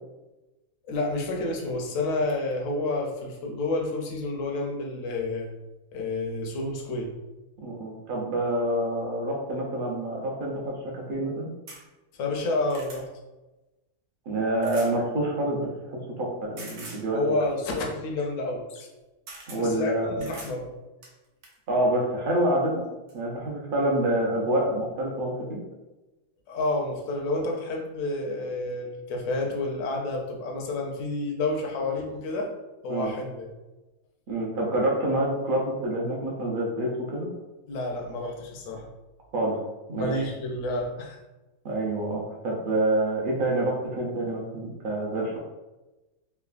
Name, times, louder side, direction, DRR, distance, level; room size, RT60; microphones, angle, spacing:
voice 1, 0.9-5.5 5.9-7.1 12.1-13.1 17.1-18.9 19.6-20.7 26.5-32.5 32.8-33.5 37.7-38.9 40.0-41.2, left 2 dB, 70° left, 0 dB, 0.9 m, -29 dB
voice 2, 7.6-10.8 11.1-11.5 14.3-17.2 19.5-20.1 21.7-22.9 23.1-25.6 32.9-33.1 34.3-37.3 39.3-39.6 39.9-40.2 41.6-45.4, right 1 dB, 60° right, -2 dB, 0.5 m, -27 dB
sound 1, 11.7-11.8 12.4-13.0 14.6-14.9 16.6-17.0 18.8-18.9 19.3-19.6 20.2-20.6 21.0-21.6 22.6-22.7 23.1-23.2, right 2 dB, 85° right, 1.2 m, -43 dB
3.2 x 2.1 x 2.3 m, 1.1 s
omnidirectional pair, 1.5 m